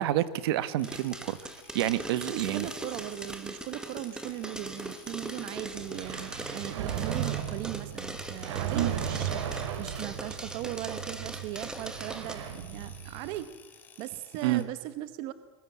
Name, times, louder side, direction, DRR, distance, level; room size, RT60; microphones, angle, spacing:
voice 1, 0.0-1.4 1.7-2.7 8.7-8.9 14.4-14.6, right 14 dB, 55° right, 16 dB, 1.2 m, -28 dB
sound 1, 0.8-14.6, left 6 dB, 10° left, 1.8 m, -55 dB
sound 2, 0.8-12.3, right 2 dB, 5° right, 1.4 m, -40 dB
voice 2, 2.2-13.5 14.0-15.3, right 14 dB, 35° right, 13 dB, 0.9 m, -38 dB
sound 3, 5.7-13.4, right 9 dB, 75° right, 3.2 m, -36 dB
24.5 x 21.5 x 8.5 m, 1.3 s
supercardioid pair, 180°, 15 cm